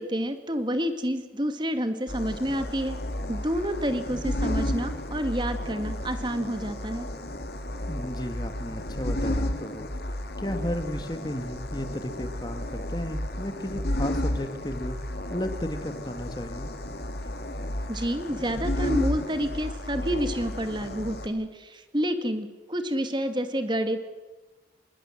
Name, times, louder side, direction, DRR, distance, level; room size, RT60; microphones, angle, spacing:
voice 1, 0.0-3.0 3.3-7.1 17.9-24.0, equal, 25° right, 8 dB, 1.9 m, -29 dB
sound 1, 2.1-21.3, left 1 dB, 65° left, 2.2 m, -32 dB
voice 2, 7.9-9.9 10.4-15.0 15.3-16.7, left 1 dB, 25° left, 8 dB, 1.8 m, -34 dB
25.5 x 21.5 x 7.7 m, 1.2 s
head